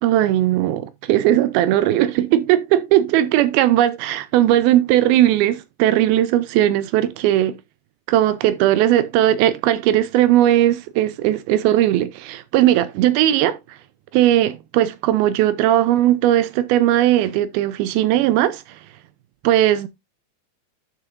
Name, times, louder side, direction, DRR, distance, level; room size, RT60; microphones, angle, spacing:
voice 1, 0.0-7.6 8.1-13.8 14.1-18.6 19.4-19.9, right 13 dB, 80° right, 2.4 m, -18 dB
10.5 x 6.5 x 2.5 m
omnidirectional pair, 4.5 m